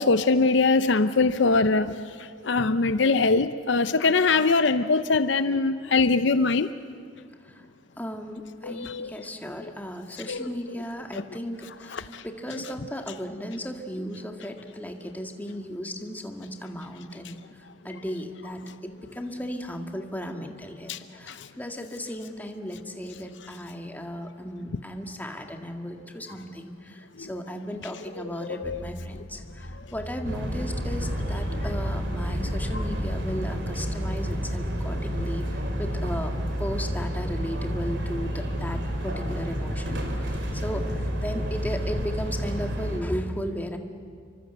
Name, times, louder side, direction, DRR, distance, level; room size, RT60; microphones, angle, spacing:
voice 1, 0.0-1.9 2.4-6.7 8.6-9.1 10.3-10.5 12.1-12.2 20.9-21.0 21.3-21.4 27.2-27.3 28.4-28.8 32.7-32.8, left 3 dB, 65° left, 12 dB, 0.7 m, -22 dB
voice 2, 8.0-17.4 17.8-36.3 36.6-40.0 40.5-43.8, equal, 10° left, 4 dB, 1.8 m, -35 dB
sound 1, 28.6-34.8, left 1 dB, 40° left, 2.3 m, -37 dB
sound 2, 30.2-43.0, equal, 65° right, 3.6 m, -30 dB
30.0 x 24.0 x 8.1 m, 2.1 s
head